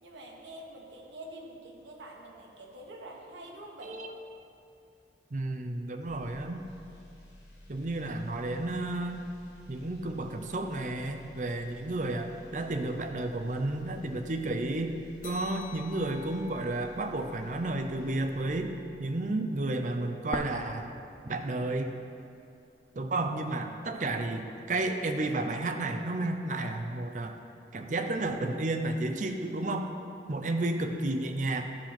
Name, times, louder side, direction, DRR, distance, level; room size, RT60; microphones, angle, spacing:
voice 1, 0.0-4.0, right 1 dB, 80° right, 0 dB, 1.1 m, -46 dB
voice 2, 5.3-6.6 7.7-9.2 9.7-14.9 15.2-18.7 19.0-20.9 21.2-22.0 23.0-27.4 27.7-29.9 30.3-31.6, right 2 dB, 40° right, 5 dB, 0.5 m, -32 dB
sound 1, 6.0-19.1 19.5-19.7, left 1 dB, 65° left, 1.2 m, -53 dB
sound 2, 15.2-20.1, left 4 dB, 45° left, 1.2 m, -51 dB
sound 3, 20.3-22.3 22.6-22.7 23.4-24.3, left 1 dB, 15° left, 0.3 m, -41 dB
10.5 x 4.3 x 5.9 m, 2.6 s
head